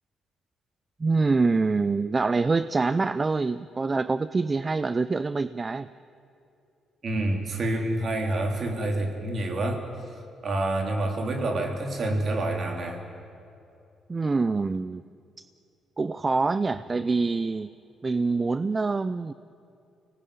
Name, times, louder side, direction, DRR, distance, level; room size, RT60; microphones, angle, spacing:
voice 1, 1.0-5.9 14.1-15.0 15.4-15.5 16.0-17.7 18.0-19.3, right 3 dB, 30° right, 15 dB, 0.5 m, -25 dB
voice 2, 7.0-9.8 10.4-13.0, right 1 dB, 50° right, 3 dB, 3.7 m, -27 dB
25.0 x 19.0 x 8.7 m, 2.6 s
cardioid pair, 90°, 0 cm